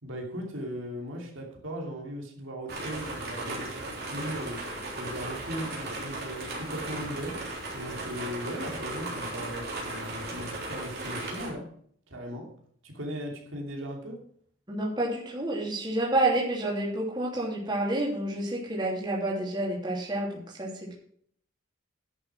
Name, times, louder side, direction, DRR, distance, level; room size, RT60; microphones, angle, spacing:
voice 1, 0.0-11.7 12.1-12.5 12.8-14.2, equal, 75° right, 0 dB, 2.8 m, -38 dB
sound 1, 2.7-11.5, right 2 dB, 50° right, 3.4 m, -36 dB
voice 2, 14.7-20.9, right 1 dB, 20° right, -4 dB, 2.9 m, -29 dB
10.5 x 6.6 x 6.1 m, 0.62 s
head